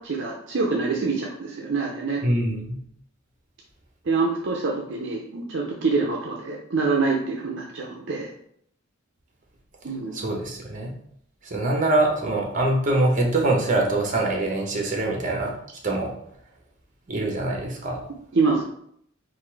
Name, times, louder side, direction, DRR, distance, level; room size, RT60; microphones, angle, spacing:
voice 1, 0.0-2.2 4.0-8.3 9.8-10.1 18.3-18.6, right 4 dB, 65° right, -1 dB, 0.6 m, -25 dB
voice 2, 2.2-2.8 10.1-10.9 11.4-15.6 15.8-16.1 17.1-18.0, right 2 dB, 40° right, 0 dB, 1.0 m, -24 dB
3.9 x 2.5 x 4.6 m, 0.68 s
head